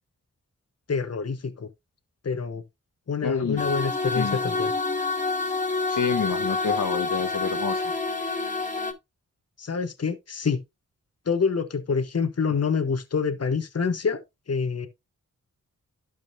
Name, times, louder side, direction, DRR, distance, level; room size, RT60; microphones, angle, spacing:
voice 1, 0.9-1.7 2.2-2.6 3.1-4.7 9.6-10.6 11.3-14.2 14.5-14.9, left 5 dB, 50° left, 1.2 m, -26 dB
voice 2, 3.2-3.7 4.1-4.4 5.9-7.9, left 6 dB, 75° left, 1.1 m, -28 dB
sound 1, 3.6-8.9, left 3 dB, 25° left, 2.3 m, -27 dB
12.0 x 5.2 x 2.6 m
cardioid pair, 50°, 32 cm